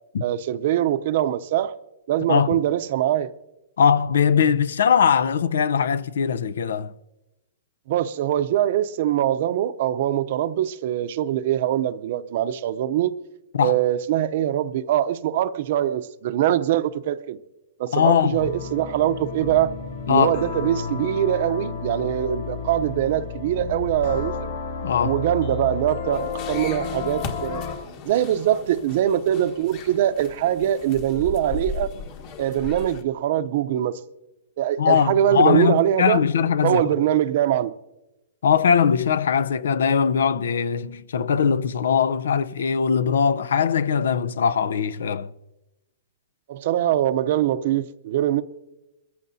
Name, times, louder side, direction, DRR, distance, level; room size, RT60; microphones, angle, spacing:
voice 1, 0.2-1.8 2.1-3.3 7.9-13.2 13.6-17.4 17.8-19.7 20.1-24.5 25.0-27.6 28.0-31.9 32.4-34.0 34.6-36.2 36.6-37.7 46.5-48.4, right 11 dB, 50° right, 0.6 m, -23 dB
voice 2, 2.3-2.6 3.8-6.9 13.5-13.8 17.9-18.5 20.1-20.4 24.8-25.2 34.8-36.8 38.4-45.3, left 7 dB, 85° left, 0.6 m, -20 dB
sound 1, 18.4-27.9, left 5 dB, 60° left, 6.7 m, -32 dB
sound 2, 26.1-33.0, left 4 dB, 35° left, 1.4 m, -37 dB
22.5 x 14.5 x 2.7 m
hypercardioid pair, 160°, 0 cm